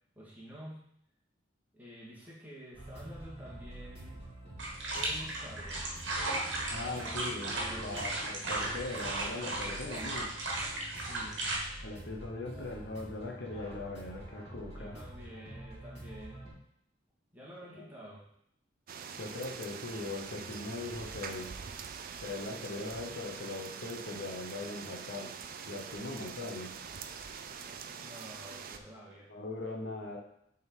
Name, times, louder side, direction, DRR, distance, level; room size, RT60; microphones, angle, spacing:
voice 1, 0.2-0.9 1.7-4.2 4.9-5.9 6.7-8.5 11.0-11.5 12.5-12.7 14.7-16.4 17.3-18.2 27.9-29.3, equal, 10° right, -6 dB, 1.9 m, -49 dB
sound 1, 2.7-16.5, right 1 dB, 35° left, 2.8 m, -47 dB
sound 2, 4.6-11.6, right 2 dB, 70° right, 1.4 m, -36 dB
voice 2, 6.7-10.3 11.8-15.0 17.7-17.9 19.2-21.5 22.2-25.4 25.7-26.8 29.3-30.2, left 2 dB, 65° left, 0 dB, 1.0 m, -40 dB
sound 3, 18.9-28.8, right 6 dB, 50° right, 0.4 m, -44 dB
6.4 x 3.9 x 4.6 m, 0.73 s
head